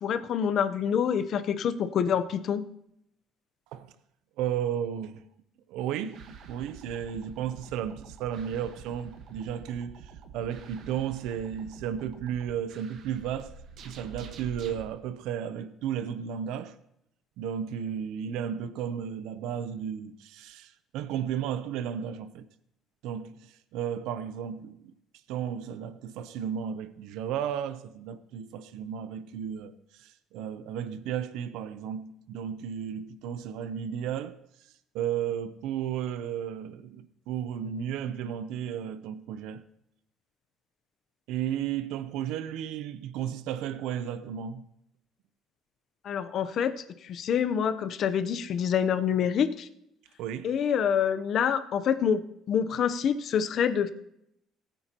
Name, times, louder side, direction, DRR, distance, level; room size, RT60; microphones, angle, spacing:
voice 1, 0.0-2.6 46.0-49.7 50.4-53.9, left 8 dB, 45° left, 0.7 m, -27 dB
voice 2, 4.4-5.3 5.7-13.6 13.8-16.8 17.4-22.5 23.0-24.9 25.3-39.6 41.3-44.6 50.2-50.5, right 9 dB, 85° right, 0.6 m, -34 dB
sound 1, 6.1-14.9, right 6 dB, 55° right, 1.3 m, -47 dB
20.0 x 9.1 x 2.9 m
cardioid pair, 150°, 0 cm